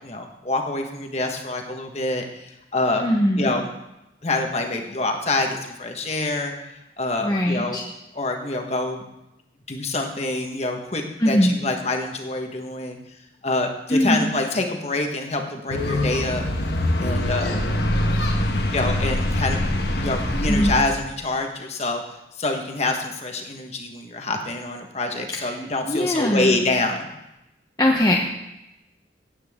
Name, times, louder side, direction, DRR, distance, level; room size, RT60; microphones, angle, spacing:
voice 1, 0.0-3.1 3.4-3.7 4.2-6.5 7.0-7.8 8.1-9.0 9.7-13.0 13.4-16.4 17.0-17.6 18.7-19.6 20.0-27.1, left 2 dB, 35° left, 3 dB, 1.3 m, -26 dB
voice 2, 3.0-3.5 7.2-7.8 11.2-11.5 13.9-14.2 20.5-20.8 25.9-26.6 27.8-28.2, equal, 20° left, -2 dB, 0.9 m, -20 dB
sound 1, 15.7-20.7, left 1 dB, 60° left, 1.3 m, -23 dB
17.0 x 8.6 x 3.7 m, 0.91 s
head